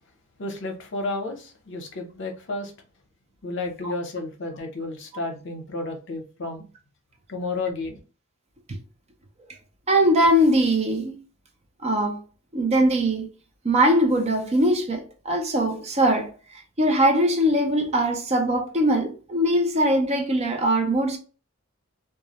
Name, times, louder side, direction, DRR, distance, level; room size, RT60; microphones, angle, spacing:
voice 1, 0.4-2.7 3.4-6.6 7.3-8.0, left 2 dB, 60° left, 0.7 m, -32 dB
voice 2, 9.9-11.1 11.8-12.2 12.5-13.3 13.6-16.3 16.8-21.2, right 1 dB, 30° right, 0.5 m, -21 dB
2.3 x 2.1 x 2.8 m
head